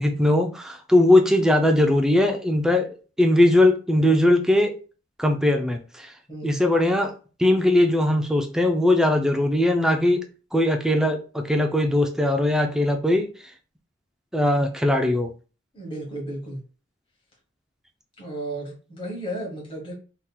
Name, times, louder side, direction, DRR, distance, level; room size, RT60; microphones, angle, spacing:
voice 1, 0.0-2.9 3.2-4.7 5.2-6.1 6.4-7.1 7.4-10.2 10.5-13.3 14.3-15.3, left 1 dB, 5° right, 4 dB, 0.3 m, -20 dB
voice 2, 6.3-6.6 15.7-16.6 18.2-20.0, right 1 dB, 25° left, -2 dB, 1.1 m, -33 dB
3.5 x 2.9 x 2.2 m, 0.36 s
head